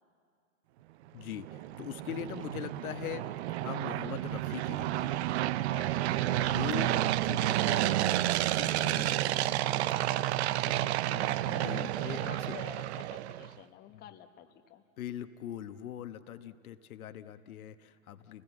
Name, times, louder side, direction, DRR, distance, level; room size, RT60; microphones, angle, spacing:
voice 1, 1.1-3.3 3.6-5.3 6.4-7.0 7.2-9.5 11.5-12.6 13.9-14.0 15.0-18.4, left 10 dB, 75° left, 9 dB, 1.3 m, -42 dB
sound 1, 1.2-13.5, right 14 dB, 50° right, 0.6 m, -30 dB
voice 2, 5.6-6.3 6.7-7.2 9.1-9.2 9.9-14.8, left 10 dB, 20° left, 5 dB, 1.1 m, -51 dB
30.0 x 19.5 x 8.1 m, 2.2 s
hypercardioid pair, 130°, 44 cm